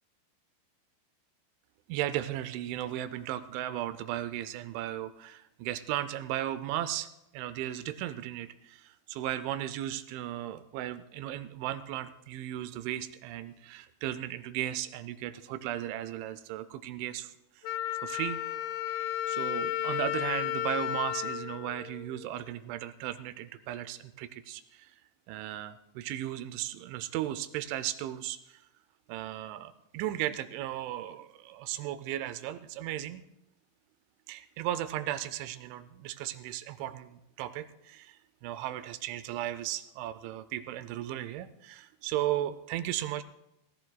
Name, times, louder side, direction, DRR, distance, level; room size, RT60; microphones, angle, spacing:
voice 1, 1.9-18.4 18.9-25.0 25.3-28.6 29.1-33.3 34.3-43.2, right 13 dB, 85° right, 13 dB, 2.9 m, -36 dB
Wind instrument woodwind instrument, 17.6-22.4, left 13 dB, 85° left, 3.1 m, -33 dB
17.5 x 17.0 x 2.2 m, 0.86 s
omnidirectional pair, 5.5 m